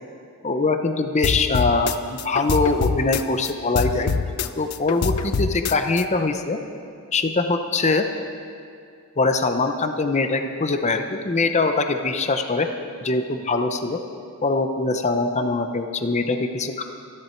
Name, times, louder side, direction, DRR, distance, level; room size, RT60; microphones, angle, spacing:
voice 1, 0.4-4.1 4.6-6.6 7.1-8.1 9.2-12.7 13.0-14.0 14.4-16.8, left 3 dB, 30° left, 7 dB, 0.7 m, -22 dB
sound 1, 1.2-3.5 3.8-6.0, left 5 dB, 85° left, 0.6 m, -25 dB
25.5 x 11.0 x 4.5 m, 2.3 s
head